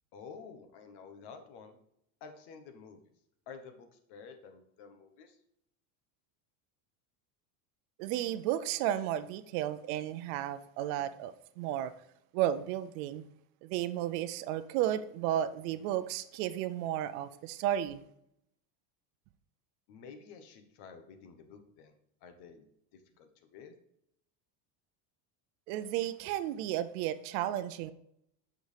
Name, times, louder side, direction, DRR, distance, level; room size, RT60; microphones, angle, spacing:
voice 1, 0.1-1.8 2.2-3.0 3.5-5.4 19.9-22.0 22.2-23.7, left 5 dB, 50° left, 1.2 m, -51 dB
voice 2, 8.0-11.9 12.3-13.2 13.6-18.0 25.7-27.9, right 12 dB, 65° right, 0.7 m, -33 dB
7.9 x 6.4 x 3.4 m
supercardioid pair, 145°, 50 cm